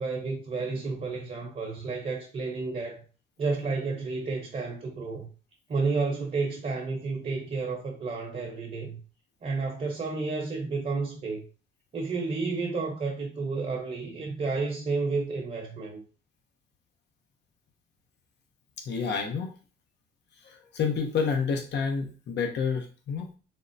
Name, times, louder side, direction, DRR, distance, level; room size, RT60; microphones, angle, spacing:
voice 1, 0.0-3.0 3.4-5.3 5.7-9.0 9.4-11.4 11.9-16.0, right 4 dB, 40° right, 0.8 m, -31 dB
voice 2, 18.9-19.5 20.4-23.3, left 5 dB, 60° left, 0.6 m, -29 dB
3.5 x 2.0 x 2.6 m
cardioid pair, 90°, 20 cm